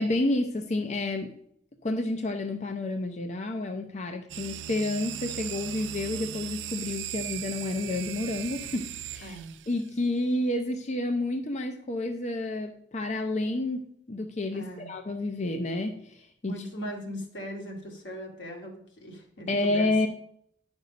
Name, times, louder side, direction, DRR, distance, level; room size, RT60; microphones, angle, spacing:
voice 1, 0.0-1.3 1.8-9.4 9.7-16.6 19.5-20.1, left 2 dB, 40° left, 4 dB, 0.6 m, -30 dB
sound 1, 4.3-9.8, right 12 dB, 90° right, 0.4 m, -38 dB
voice 2, 9.2-9.6 14.5-14.9 16.5-19.9, equal, 80° left, 0 dB, 2.2 m, -39 dB
10.5 x 5.3 x 5.2 m, 0.70 s
head